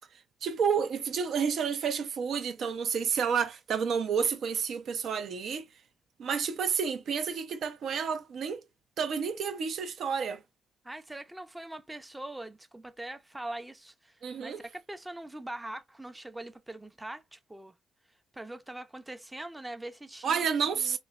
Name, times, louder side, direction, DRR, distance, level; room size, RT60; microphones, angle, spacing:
voice 1, 0.4-5.7 6.2-8.6 9.0-10.4 14.2-14.6 20.2-21.0, right 6 dB, 65° right, 0.5 m, -30 dB
voice 2, 10.8-17.7 18.3-20.5 20.7-21.0, right 1 dB, 10° right, 0.5 m, -42 dB
3.0 x 2.1 x 2.4 m
cardioid pair, 75°, 0 cm